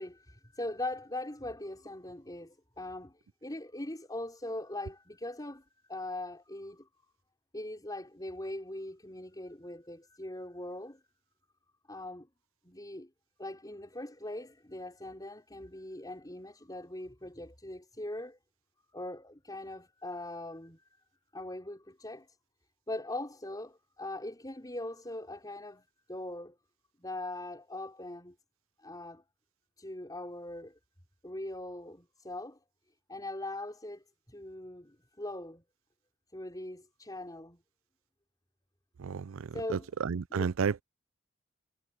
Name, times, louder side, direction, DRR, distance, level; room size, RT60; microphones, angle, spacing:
voice 1, 0.0-6.9 7.5-11.0 11.9-12.3 12.6-13.1 13.4-18.4 18.9-20.8 21.3-22.4 22.9-26.6 27.0-28.3 28.8-29.2 29.8-30.8 31.2-32.6 33.1-35.6 36.3-37.6 39.5-39.9 40.3-40.5, left 1 dB, 20° left, 4.8 m, -41 dB
voice 2, 39.0-39.4 39.7-40.8, right 6 dB, 85° right, 0.5 m, -31 dB
head